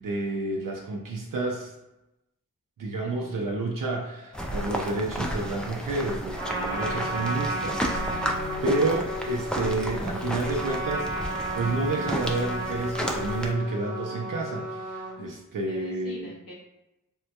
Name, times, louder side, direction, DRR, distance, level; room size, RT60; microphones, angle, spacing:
voice 1, 0.0-1.7 2.8-8.3 8.6-16.3, right 2 dB, 70° right, 0 dB, 0.5 m, -30 dB
voice 2, 2.8-3.5 8.4-8.6 15.2-16.5, equal, 80° left, -3 dB, 0.8 m, -46 dB
sound 1, 3.2-12.3, left 3 dB, 60° left, 0.7 m, -48 dB
sound 2, 4.3-13.5, equal, 5° left, 0.3 m, -33 dB
Trumpet, 6.3-15.1, right 1 dB, 35° right, 1.0 m, -33 dB
3.5 x 2.2 x 2.8 m, 0.94 s
wide cardioid pair, 60°, 34 cm